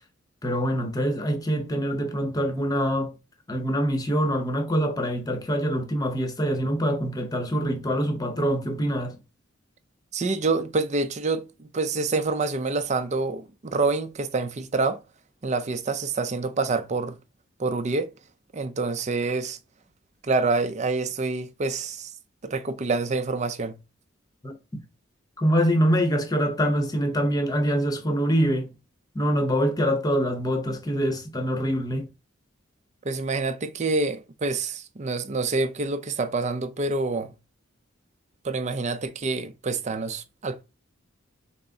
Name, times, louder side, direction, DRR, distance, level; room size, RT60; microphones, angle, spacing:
voice 1, 0.4-3.2 3.5-9.2 24.4-24.8 25.4-28.7 29.1-32.1, equal, 20° left, 0.9 m, -25 dB
voice 2, 10.1-15.0 15.4-17.2 17.6-18.1 18.5-19.6 20.2-22.1 22.4-23.8 33.0-37.3 38.4-40.6, right 3 dB, 35° right, 0.5 m, -27 dB
6.0 x 2.0 x 3.9 m
head